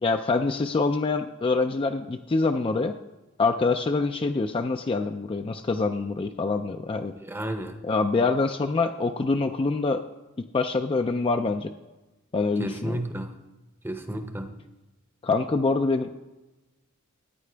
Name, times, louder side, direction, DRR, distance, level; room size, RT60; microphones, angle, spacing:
voice 1, 0.0-3.0 3.4-7.1 7.8-10.0 10.4-11.7 12.3-13.0 15.2-16.2, left 3 dB, 25° left, 6 dB, 0.3 m, -25 dB
voice 2, 7.1-7.8 12.6-13.3 13.8-14.5, right 1 dB, 10° right, 7 dB, 0.7 m, -32 dB
14.5 x 9.5 x 3.4 m, 1.1 s
head